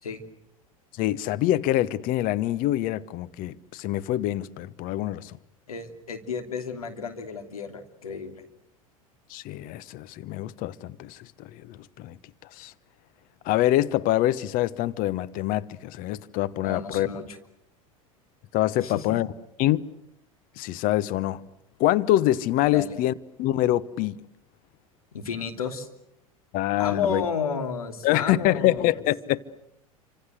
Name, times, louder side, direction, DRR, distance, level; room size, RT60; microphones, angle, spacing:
voice 1, 1.0-5.3 9.3-12.2 12.6-12.7 13.4-17.1 18.5-19.3 19.6-19.8 20.6-21.4 21.8-24.2 26.5-27.2 28.0-29.4, left 14 dB, 50° left, 1.1 m, -25 dB
voice 2, 5.7-8.4 16.6-17.4 18.8-19.2 22.7-23.0 25.1-25.9 26.8-29.0, left 6 dB, 85° left, 3.1 m, -32 dB
29.0 x 26.0 x 8.0 m
hypercardioid pair, 80°, 18 cm